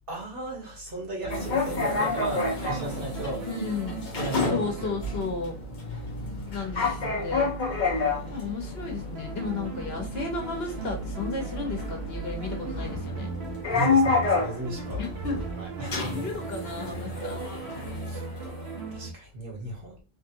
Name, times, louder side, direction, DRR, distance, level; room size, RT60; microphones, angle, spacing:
voice 1, 0.1-3.5 4.1-4.9 5.9-6.1 6.7-8.5 13.7-15.0 15.5-16.1 18.1-18.2 18.9-20.0, right 2 dB, 60° right, 1.4 m, -37 dB
sound 1, 1.2-19.1, right 5 dB, 90° right, 1.0 m, -38 dB
sound 2, 1.3-18.8, left 4 dB, 50° left, 1.0 m, -30 dB
voice 2, 3.5-4.0 4.5-5.6 6.5-7.8 8.3-13.3 15.0-15.4 16.1-17.6 17.9-18.0, left 4 dB, 75° left, 1.3 m, -34 dB
3.2 x 2.8 x 2.6 m
omnidirectional pair, 1.0 m